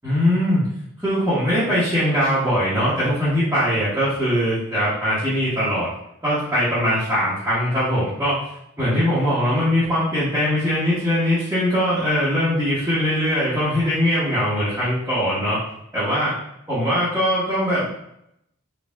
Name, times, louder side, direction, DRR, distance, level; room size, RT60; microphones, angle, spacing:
voice 1, 0.0-0.7 1.0-5.9 6.2-8.4 8.8-15.6 15.9-16.4 16.7-17.9, equal, 10° right, -13 dB, 1.1 m, -21 dB
4.4 x 2.5 x 3.4 m, 0.78 s
head